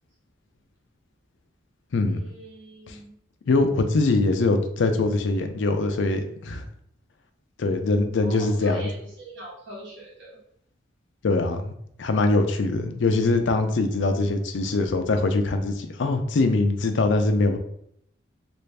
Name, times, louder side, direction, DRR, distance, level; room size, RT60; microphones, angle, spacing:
voice 1, 2.0-3.1 8.1-10.4, equal, 60° right, -6 dB, 1.3 m, -40 dB
voice 2, 3.5-6.6 7.6-8.9 11.2-17.6, left 2 dB, 65° left, 7 dB, 0.4 m, -23 dB
3.2 x 2.6 x 3.2 m, 0.70 s
head